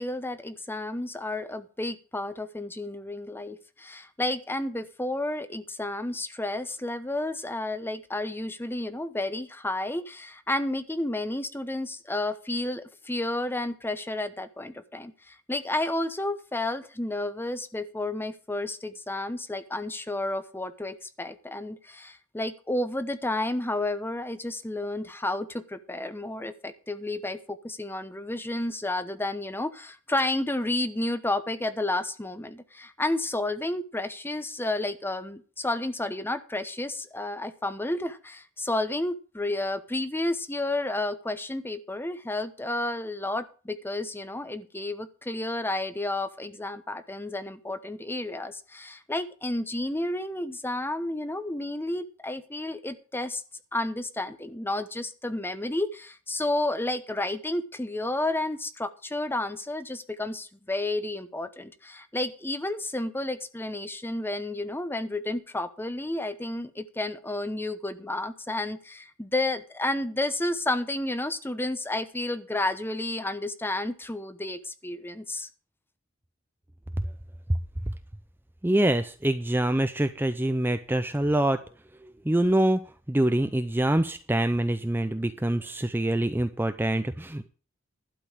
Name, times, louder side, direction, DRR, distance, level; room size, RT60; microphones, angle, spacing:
voice 1, 0.0-53.4 53.7-75.5, left 2 dB, 10° left, 11 dB, 0.9 m, -31 dB
voice 2, 78.6-81.6 82.2-82.8 83.1-87.5, right 1 dB, 10° right, 9 dB, 0.5 m, -25 dB
12.0 x 5.3 x 8.8 m, 0.37 s
head